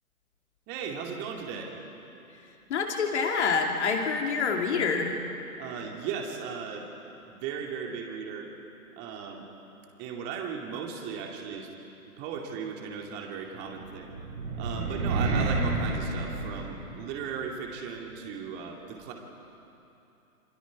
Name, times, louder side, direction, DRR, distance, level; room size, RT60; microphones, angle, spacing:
voice 1, 0.7-1.7 5.6-6.9 7.2-8.5 9.0-9.5 10.0-11.7 12.2-14.2 14.6-19.1, right 6 dB, 25° right, 1 dB, 2.4 m, -37 dB
voice 2, 2.7-5.1, left 5 dB, 50° left, 2 dB, 3.0 m, -26 dB
sound 1, 13.7-17.2, right 3 dB, 55° right, 4.8 m, -30 dB
28.0 x 25.5 x 4.7 m, 2.9 s
figure-of-eight pair, 120°, 45 cm